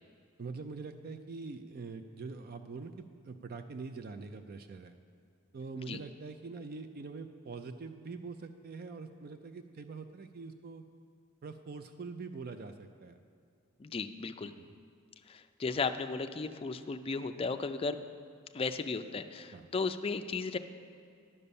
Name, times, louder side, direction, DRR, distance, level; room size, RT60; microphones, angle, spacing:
voice 1, 0.4-4.9 5.5-10.8 11.4-13.2 14.4-14.7 19.5-19.7, right 4 dB, 45° right, 9 dB, 0.4 m, -44 dB
voice 2, 13.8-14.5 15.3-18.0 18.5-20.6, left 4 dB, 25° left, 8 dB, 0.3 m, -35 dB
11.0 x 5.4 x 6.9 m, 2.3 s
head